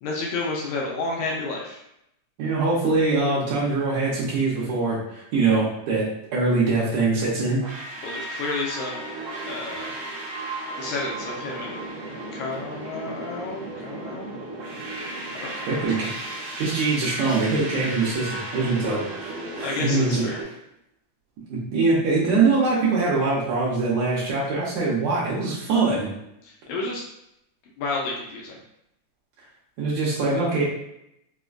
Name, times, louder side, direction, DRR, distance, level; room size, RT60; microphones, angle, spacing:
voice 1, 0.0-1.8 8.0-9.1 9.5-9.9 10.8-11.8 12.3-14.4 15.3-16.1 19.6-20.5 26.4-27.0 27.8-28.6, left 3 dB, 80° left, -2 dB, 1.8 m, -31 dB
voice 2, 2.4-7.6 15.7-16.1 16.6-20.2 21.5-26.1 29.8-30.6, right 3 dB, 75° right, -6 dB, 1.9 m, -23 dB
sound 1, 7.6-20.4, right 2 dB, 55° right, 1.7 m, -35 dB
5.0 x 2.1 x 2.4 m, 0.80 s
omnidirectional pair, 3.7 m